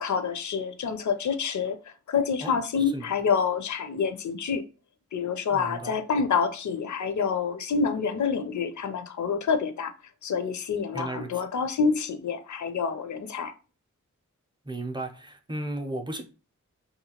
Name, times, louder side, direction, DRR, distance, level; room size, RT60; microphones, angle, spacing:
voice 1, 0.0-1.8 2.1-4.6 5.1-9.9 10.2-13.5, left 6 dB, 65° left, 0.5 m, -27 dB
voice 2, 5.5-5.9 10.9-11.3 14.6-16.2, right 2 dB, 15° right, 0.5 m, -34 dB
2.7 x 2.3 x 2.8 m
cardioid pair, 55°, 31 cm